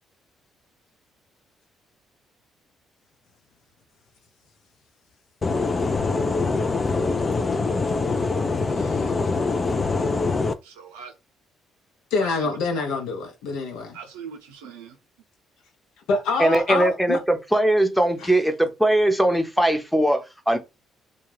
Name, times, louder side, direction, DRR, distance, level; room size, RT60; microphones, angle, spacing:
sound 1, 5.4-10.5, left 3 dB, 35° left, 0.4 m, -24 dB
voice 1, 8.7-9.1 12.1-14.0 16.1-17.2 18.2-18.3, left 4 dB, 75° left, 0.7 m, -26 dB
voice 2, 9.9-10.2 10.6-11.1 12.2-12.5 13.9-15.0, right 6 dB, 85° right, 0.6 m, -41 dB
voice 3, 16.4-20.6, right 1 dB, ahead, 0.7 m, -20 dB
2.3 x 2.2 x 3.3 m
hypercardioid pair, 50°, 0 cm